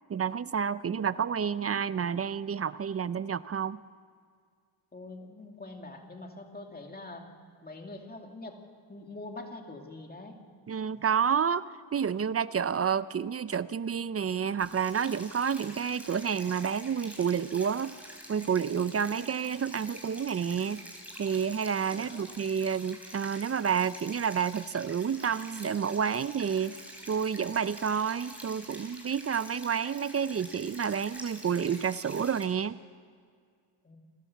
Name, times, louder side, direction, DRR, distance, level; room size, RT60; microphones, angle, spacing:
voice 1, 0.1-3.8 10.7-11.6 11.9-17.9 18.3-20.8 21.2-26.8 27.1-32.8, right 7 dB, 30° right, 16 dB, 0.4 m, -29 dB
voice 2, 4.9-7.3 7.6-8.6 8.9-10.4 21.9-22.3 33.8-34.0, left 2 dB, 20° left, 3 dB, 2.4 m, -44 dB
sound 1, 14.6-32.4, equal, 5° right, 4.2 m, -47 dB
28.0 x 13.0 x 7.2 m, 2.1 s
cardioid pair, 120°, 49 cm